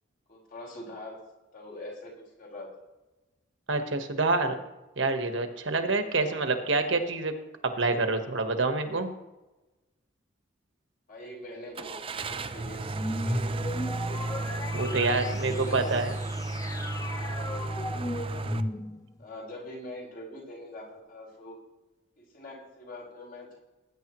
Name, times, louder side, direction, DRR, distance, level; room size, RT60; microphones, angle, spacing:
voice 1, 0.3-1.2 1.5-2.7 6.3-6.6 11.1-12.0 12.3-14.2 14.7-16.0 18.2-18.8 19.2-21.6 22.2-23.6, left 1 dB, 45° left, -3 dB, 4.7 m, -44 dB
voice 2, 3.7-4.6 5.0-7.3 7.6-9.1 14.7-16.1, right 3 dB, 65° right, 6 dB, 1.4 m, -27 dB
Car / Engine starting, 11.7-18.6, right 2 dB, 25° right, 0.5 m, -33 dB
sound 1, 12.9-19.2, left 1 dB, 15° left, 0.7 m, -36 dB
19.5 x 9.9 x 3.1 m, 1.0 s
head